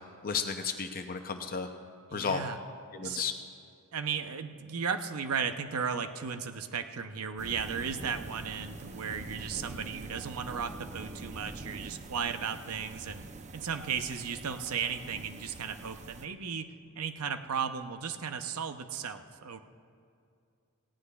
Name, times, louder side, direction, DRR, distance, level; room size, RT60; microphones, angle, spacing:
voice 1, 0.2-1.7 2.1-2.4 2.9-3.3, left 6 dB, 40° left, 6 dB, 0.6 m, -33 dB
voice 2, 2.1-2.6 3.0-3.2 3.9-13.2 13.5-19.6, right 6 dB, 75° right, 8 dB, 0.7 m, -35 dB
sound 1, 7.4-16.3, right 2 dB, 30° right, 0.6 m, -45 dB
18.0 x 17.0 x 2.4 m, 2.4 s
head